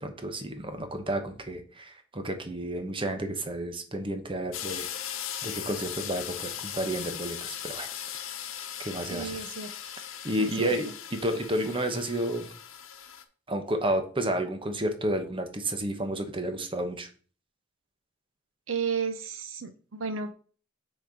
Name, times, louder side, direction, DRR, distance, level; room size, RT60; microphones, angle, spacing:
voice 1, 0.0-4.9 5.4-7.9 8.8-9.4 10.2-12.5 13.5-17.1, right 1 dB, 25° right, 6 dB, 1.1 m, -31 dB
sound 1, 4.5-13.2, left 9 dB, 85° left, 0.9 m, -38 dB
voice 2, 9.1-9.7 10.4-10.8 18.7-20.3, right 5 dB, 75° right, 9 dB, 0.7 m, -33 dB
6.7 x 4.4 x 5.0 m, 0.41 s
head